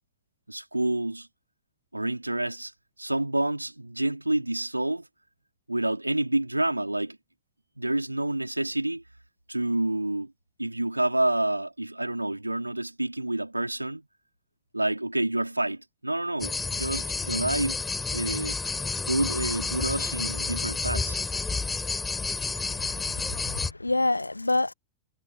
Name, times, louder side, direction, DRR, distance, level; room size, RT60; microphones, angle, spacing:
voice 1, 0.5-1.3 1.9-2.7 3.0-5.1 5.7-7.2 7.8-9.0 9.5-10.3 10.6-14.1 14.7-17.8 18.1-18.6 19.1-21.2, right 1 dB, 85° right, 4.5 m, -28 dB
sound 1, 16.4-23.7, left 4 dB, 15° left, 5.0 m, -30 dB
voice 2, 22.7-24.7, left 2 dB, 85° left, 1.0 m, -28 dB
figure-of-eight pair, 90°, 0 cm